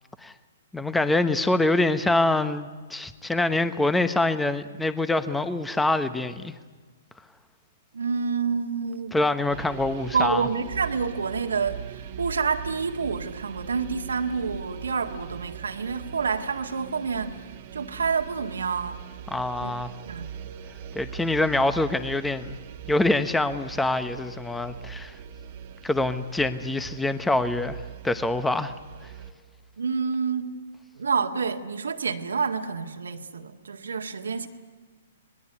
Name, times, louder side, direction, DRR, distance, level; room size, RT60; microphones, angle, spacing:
voice 1, 0.7-6.5 9.1-10.5 19.3-19.9 20.9-22.5 22.9-25.2 25.8-28.7, left 2 dB, 5° left, 12 dB, 1.0 m, -25 dB
voice 2, 7.9-9.2 10.1-19.0 19.6-19.8 20.1-20.3 29.8-30.5 31.0-34.5, right 5 dB, 80° right, 4 dB, 1.8 m, -28 dB
sound 1, 9.5-29.3, right 8 dB, 45° right, 1.5 m, -40 dB
25.5 x 20.0 x 9.6 m, 1.4 s
hypercardioid pair, 125°, 0 cm